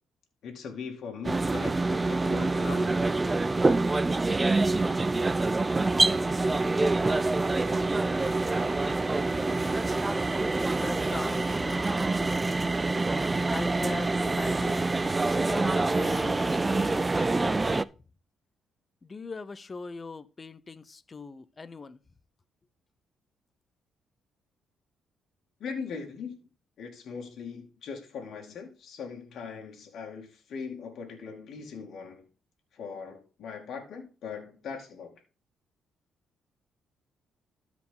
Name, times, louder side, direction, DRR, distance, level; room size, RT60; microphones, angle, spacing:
voice 1, 0.4-3.1 25.6-26.4 26.8-32.2 32.7-35.1, left 5 dB, 70° left, 2.4 m, -40 dB
sound 1, 1.2-17.8, right 3 dB, 20° right, 0.4 m, -26 dB
voice 2, 10.7-12.1 13.5-17.8 19.0-22.0, left 4 dB, 30° left, 0.7 m, -41 dB
13.0 x 5.0 x 3.8 m
cardioid pair, 90°, 0 cm